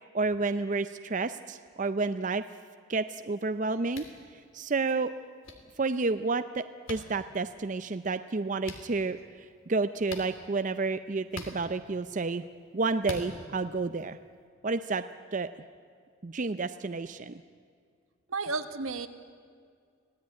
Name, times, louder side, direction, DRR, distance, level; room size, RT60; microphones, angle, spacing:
voice 1, 0.1-2.4 2.9-4.0 4.5-5.1 5.8-6.6 6.9-9.2 9.7-12.4 12.7-14.2 14.6-15.0 15.3-15.5 16.2-17.4, right 3 dB, 40° right, 10 dB, 0.5 m, -30 dB
sound 1, 3.9-4.1 5.4-5.5 6.9-7.0 8.6-8.8 10.1-10.3 11.3-11.5 13.0-13.3, left 2 dB, 75° left, 3.0 m, -40 dB
voice 2, 18.3-19.1, right 3 dB, 90° right, 8 dB, 1.4 m, -32 dB
25.5 x 17.0 x 9.5 m, 2.1 s
head